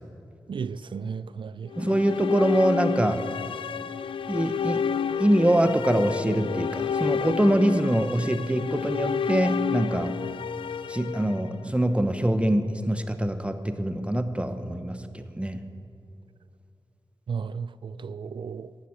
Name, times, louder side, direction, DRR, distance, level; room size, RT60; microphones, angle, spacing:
voice 1, 0.5-2.0 17.3-18.7, right 6 dB, 75° right, 0.4 m, -34 dB
sound 1, 1.7-11.9, left 7 dB, 90° left, 0.3 m, -30 dB
voice 2, 1.8-3.3 4.3-4.8 5.2-10.2 10.9-15.6, right 1 dB, 15° right, 1.0 m, -24 dB
12.5 x 7.8 x 8.7 m
cardioid pair, 50°, 9 cm